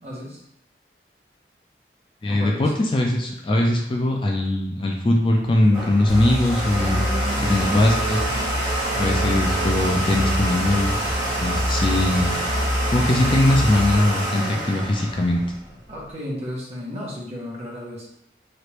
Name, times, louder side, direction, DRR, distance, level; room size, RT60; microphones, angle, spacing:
voice 1, 0.0-0.4 2.3-2.7 15.9-18.1, left 1 dB, 35° right, -5 dB, 0.9 m, -34 dB
voice 2, 2.2-7.0 7.4-8.2 9.0-11.0 11.4-12.4 12.9-15.4, left 1 dB, 30° left, 0 dB, 0.3 m, -21 dB
Domestic sounds home sounds, 5.4-16.1, right 1 dB, 20° right, 1.2 m, -27 dB
sound 1, 6.1-13.9, left 1 dB, 50° left, 1.0 m, -27 dB
3.1 x 2.5 x 3.0 m, 0.78 s
head